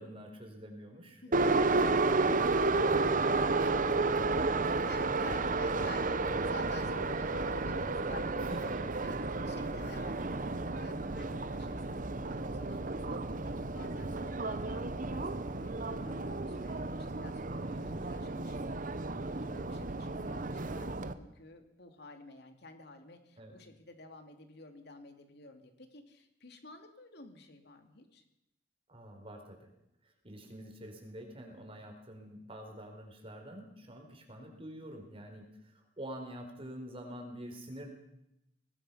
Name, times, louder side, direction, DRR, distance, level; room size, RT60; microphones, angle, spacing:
voice 1, 0.0-2.0 2.4-4.8 8.4-9.0 17.5-17.9 23.4-23.5 28.9-29.7 30.0-37.9, right 1 dB, 30° right, 3 dB, 4.3 m, -47 dB
voice 2, 1.2-1.8 4.8-8.4 9.0-17.5 17.8-28.2, left 3 dB, 65° left, 5 dB, 2.8 m, -52 dB
Subway metro underground, 1.3-21.1, right 3 dB, 45° right, 1.1 m, -32 dB
24.0 x 19.0 x 5.8 m, 0.83 s
head